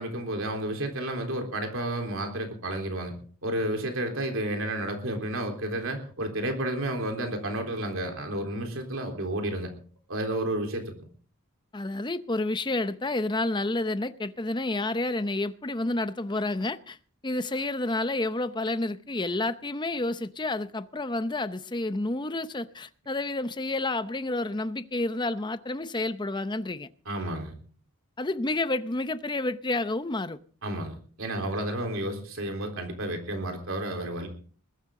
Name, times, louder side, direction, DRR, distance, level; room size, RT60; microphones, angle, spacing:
voice 1, 0.0-3.1 3.4-9.7 10.1-10.9 27.1-27.5 30.6-34.3, right 1 dB, 60° right, 3.7 m, -31 dB
voice 2, 11.7-17.0 17.2-26.9 28.2-30.4, left 2 dB, 20° left, 0.6 m, -30 dB
21.0 x 13.0 x 3.8 m
head